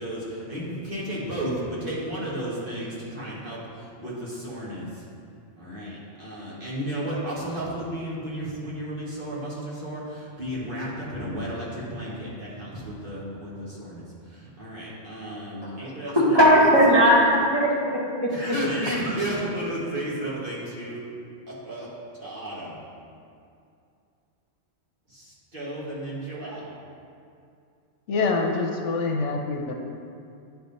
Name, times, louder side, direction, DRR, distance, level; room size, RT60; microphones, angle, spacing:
voice 1, 0.0-5.0 5.6-16.5 18.3-21.1 21.5-21.9 22.2-22.8 25.1-26.7, right 1 dB, 45° right, -7 dB, 1.7 m, -33 dB
voice 2, 16.2-18.3, equal, 20° right, -6 dB, 1.2 m, -18 dB
voice 3, 28.1-29.7, left 3 dB, 75° left, 2 dB, 1.0 m, -25 dB
9.8 x 3.5 x 4.0 m, 2.5 s
omnidirectional pair, 1.2 m